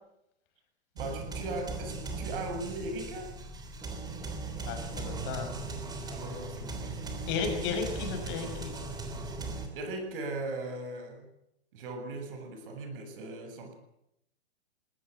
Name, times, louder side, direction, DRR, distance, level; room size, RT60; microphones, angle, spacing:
voice 1, 0.9-3.3 6.1-7.3 9.7-11.3 11.7-13.8, right 2 dB, 50° right, 6 dB, 7.5 m, -38 dB
sound 1, 1.0-9.7, right 3 dB, 10° right, 3.3 m, -38 dB
voice 2, 4.6-5.5 7.3-8.8, left 5 dB, 30° left, 5 dB, 5.8 m, -34 dB
21.0 x 18.0 x 9.1 m, 0.81 s
hypercardioid pair, 145°, 34 cm